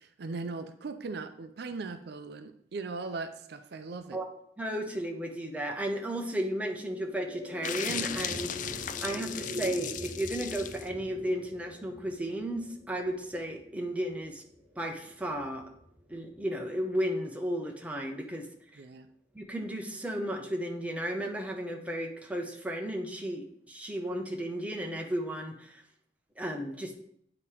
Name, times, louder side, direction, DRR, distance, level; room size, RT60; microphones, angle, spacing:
voice 1, 0.0-4.2 18.8-19.1, right 3 dB, 65° right, 10 dB, 0.5 m, -39 dB
voice 2, 4.6-8.6 9.0-14.4 14.8-15.7 16.1-18.5 18.7-18.8 19.3-25.8 26.4-26.9, right 1 dB, 10° right, 2 dB, 0.7 m, -34 dB
sound 1, 6.5-17.0, equal, 15° left, 1.7 m, -44 dB
sound 2, 7.6-10.9, left 9 dB, 45° left, 0.3 m, -37 dB
8.3 x 2.9 x 4.7 m, 0.70 s
head